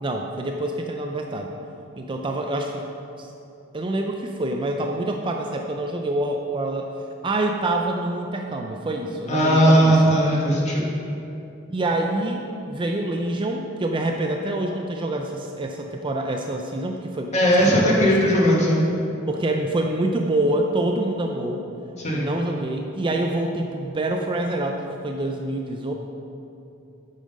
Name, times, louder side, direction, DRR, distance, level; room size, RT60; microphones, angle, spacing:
voice 1, 0.0-1.5 2.0-2.9 3.2-3.3 3.7-6.9 7.2-10.0 11.7-17.3 17.7-17.9 19.3-21.6 22.1-25.9, right 1 dB, 25° right, 2 dB, 0.4 m, -26 dB
voice 2, 9.3-10.8 17.3-18.8 22.0-22.3, equal, 35° left, -4 dB, 1.7 m, -18 dB
8.5 x 5.6 x 5.2 m, 2.7 s
head